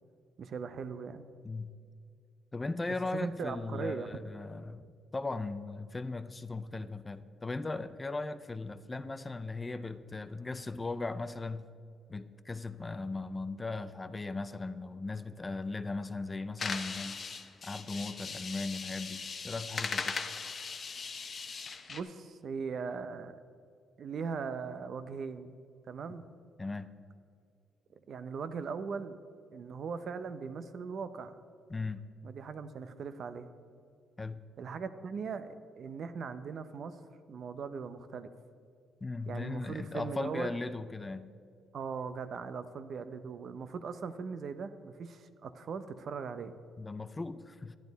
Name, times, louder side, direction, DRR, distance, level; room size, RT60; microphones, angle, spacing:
voice 1, 0.4-1.3 2.9-4.2 21.9-23.4 24.0-25.6 25.9-26.3 28.1-29.2 29.5-31.4 32.2-33.5 34.6-37.0 37.3-38.3 39.3-40.5 41.7-46.6, right 5 dB, 60° right, 11 dB, 0.6 m, -39 dB
voice 2, 1.4-1.7 2.5-4.8 5.1-11.7 12.1-17.2 17.6-20.2 26.6-26.9 31.7-32.1 34.2-34.4 39.0-41.3 46.8-47.8, left 3 dB, 20° left, 12 dB, 0.4 m, -38 dB
sound 1, 16.6-22.0, left 5 dB, 45° left, 0.7 m, -39 dB
10.5 x 10.5 x 4.0 m, 2.3 s
cardioid pair, 90°, 0 cm